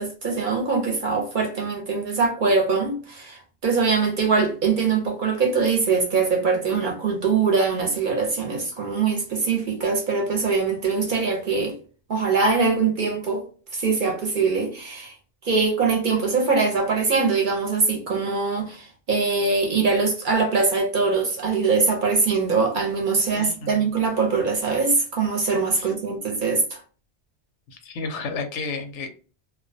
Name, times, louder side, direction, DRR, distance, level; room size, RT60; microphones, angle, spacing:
voice 1, 0.0-11.8 12.1-13.4 13.7-15.2 15.4-26.8, right 4 dB, 55° right, 0.6 m, -22 dB
voice 2, 23.4-23.9 25.7-25.9 27.7-29.1, left 4 dB, 90° left, 0.9 m, -32 dB
2.2 x 2.2 x 2.5 m
omnidirectional pair, 1.2 m